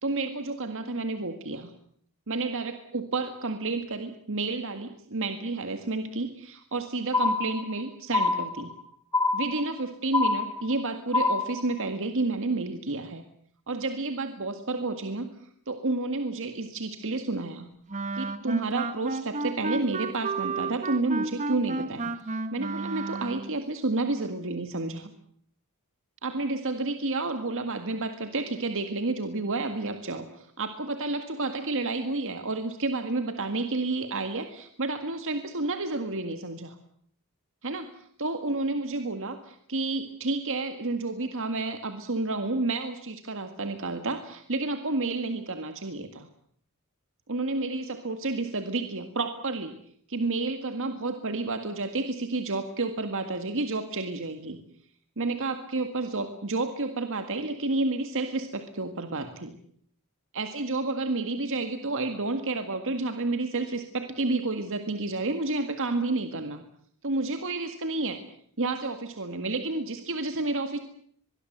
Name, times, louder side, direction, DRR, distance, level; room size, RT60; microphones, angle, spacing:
voice 1, 0.0-1.7 2.3-8.7 9.3-13.2 13.7-15.3 15.7-17.7 18.1-25.1 26.2-36.8 37.6-46.3 47.3-49.8 50.1-54.6 55.2-59.6 60.3-66.6 67.0-68.2 68.6-70.8, right 3 dB, 60° right, 7 dB, 1.9 m, -30 dB
sound 1, 7.1-7.8 8.1-8.8 9.1-9.8 10.1-10.8 11.1-11.8, left 3 dB, 15° left, 2.6 m, -26 dB
Wind instrument woodwind instrument, 17.9-23.6, right 3 dB, 35° right, 1.6 m, -32 dB
24.0 x 22.0 x 8.0 m, 0.64 s
head